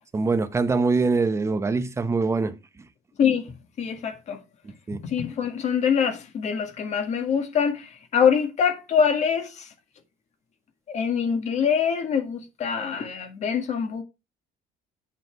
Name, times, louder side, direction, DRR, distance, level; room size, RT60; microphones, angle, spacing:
voice 1, 0.1-2.6 4.9-5.0, right 4 dB, 15° right, 0.9 m, -23 dB
voice 2, 3.2-4.4 5.0-9.7 10.9-14.0, left 7 dB, 45° left, 1.9 m, -24 dB
8.1 x 5.8 x 4.6 m
cardioid pair, 130°, 16 cm